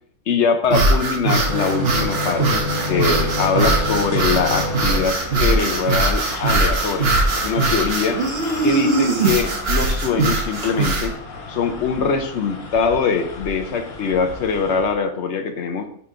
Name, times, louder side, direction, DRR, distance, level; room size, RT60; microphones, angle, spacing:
voice 1, 0.3-8.2 8.6-11.2 11.5-15.9, left 5 dB, 60° left, 6 dB, 0.8 m, -22 dB
sound 1, 0.6-11.1, right 3 dB, 45° right, 1.1 m, -21 dB
sound 2, 1.4-9.1 10.4-10.8, left 2 dB, 15° right, 1.0 m, -29 dB
sound 3, 2.9-15.0, left 3 dB, 80° left, 1.5 m, -35 dB
5.6 x 4.0 x 4.8 m, 0.66 s
omnidirectional pair, 1.5 m